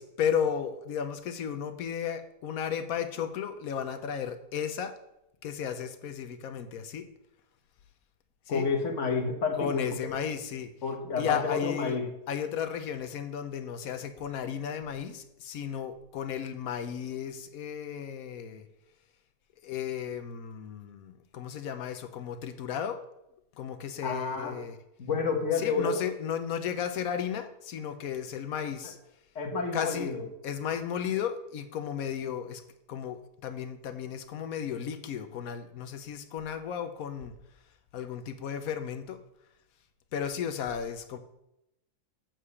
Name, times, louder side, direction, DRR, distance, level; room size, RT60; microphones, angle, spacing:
voice 1, 0.0-5.0 5.4-7.1 8.5-8.7 9.6-10.7 11.2-12.0 12.3-18.7 19.6-23.0 23.6-24.8 25.6-29.0 29.7-30.1 30.4-32.6 32.9-37.3 37.9-39.2 40.1-41.2, left 8 dB, 65° left, 9 dB, 1.1 m, -34 dB
voice 2, 8.5-9.9 10.8-12.1 24.0-24.6 25.0-26.0 29.3-30.2, left 4 dB, 50° left, 3 dB, 1.6 m, -29 dB
7.5 x 4.9 x 7.0 m, 0.85 s
omnidirectional pair, 1.7 m